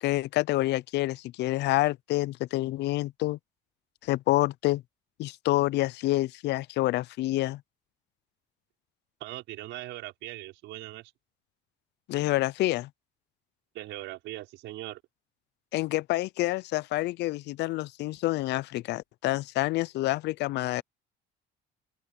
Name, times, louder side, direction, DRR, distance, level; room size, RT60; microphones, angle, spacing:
voice 1, 0.0-3.4 4.0-4.8 5.2-7.6 12.1-12.9 15.7-20.8, left 17 dB, 65° left, 0.5 m, -28 dB
voice 2, 9.2-11.1 13.7-15.0, right 16 dB, 80° right, 5.5 m, -40 dB
open air
cardioid pair, 140°, 19 cm